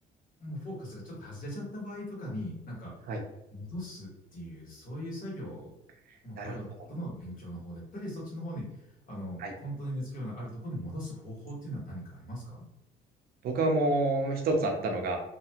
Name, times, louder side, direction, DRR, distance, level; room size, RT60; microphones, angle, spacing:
voice 1, 0.4-2.9 3.5-5.7 6.2-8.7 9.1-12.6, equal, 50° left, -4 dB, 1.5 m, -39 dB
voice 2, 13.4-15.2, right 2 dB, 65° right, 2 dB, 0.7 m, -28 dB
2.8 x 2.2 x 2.8 m, 0.85 s
cardioid pair, 110°, 17 cm